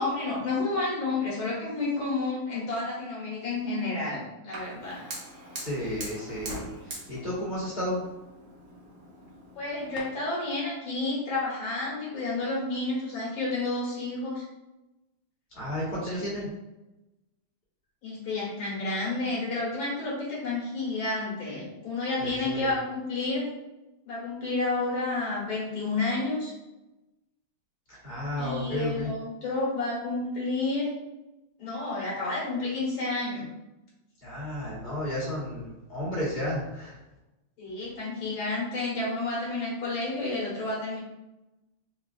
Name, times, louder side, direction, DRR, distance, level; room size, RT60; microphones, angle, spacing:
voice 1, 0.0-5.0 9.6-14.4 18.0-23.5 24.1-26.5 28.4-30.9 31.6-33.5 37.6-41.0, left 3 dB, 65° left, -6 dB, 2.0 m, -30 dB
Fire, 4.5-10.0, right 2 dB, 80° right, 0.6 m, -43 dB
voice 2, 5.6-6.6 6.8-8.0 15.5-16.5 22.2-22.7 27.9-29.1 34.2-37.0, left 1 dB, 25° left, -9 dB, 1.5 m, -32 dB
4.7 x 2.4 x 2.4 m, 0.98 s
omnidirectional pair, 2.4 m